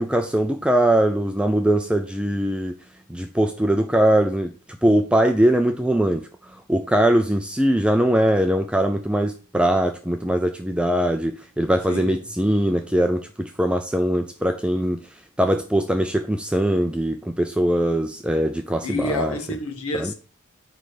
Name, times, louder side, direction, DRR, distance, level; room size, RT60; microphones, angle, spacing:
voice 1, 0.0-2.7 3.1-4.5 4.8-6.2 6.7-15.0 15.4-19.4 19.9-20.1, right 1 dB, 5° right, 0.4 m, -21 dB
voice 2, 11.9-12.3 18.8-20.1, left 2 dB, 80° left, 1.5 m, -29 dB
9.2 x 3.4 x 6.5 m
head